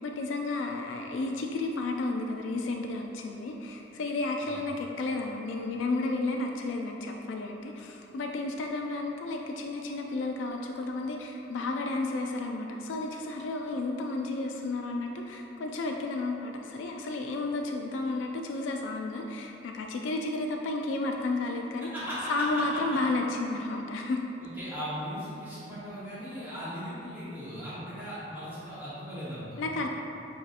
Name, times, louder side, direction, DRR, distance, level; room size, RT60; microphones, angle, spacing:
voice 1, 0.0-21.9 22.3-24.2 29.6-29.9, left 2 dB, 85° left, 2 dB, 0.3 m, -32 dB
voice 2, 21.8-23.0 24.4-29.6, equal, 10° right, -12 dB, 0.9 m, -38 dB
7.8 x 2.7 x 2.5 m, 3.0 s
head